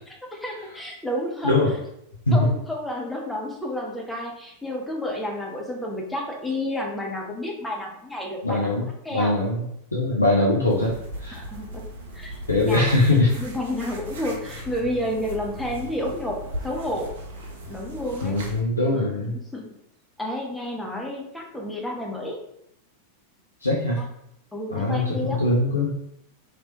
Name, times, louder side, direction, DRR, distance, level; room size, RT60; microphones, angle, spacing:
voice 1, 0.1-1.6 2.3-8.7 9.0-9.3 11.3-11.8 12.1-12.3 12.6-12.9 13.3-17.1 17.7-18.4 18.9-19.8 20.2-22.4 24.0-24.1 24.5-25.4, left 1 dB, 5° left, -1 dB, 0.7 m, -31 dB
voice 2, 8.4-8.9 9.1-9.6 9.9-10.9 11.2-11.4 12.5-13.3 18.2-19.3 23.6-24.0 24.7-25.9, left 2 dB, 80° left, -4 dB, 0.6 m, -21 dB
sound 1, 10.7-18.6, equal, 60° right, 0.7 m, -37 dB
3.0 x 2.9 x 2.9 m, 0.77 s
figure-of-eight pair, 90°, 0 cm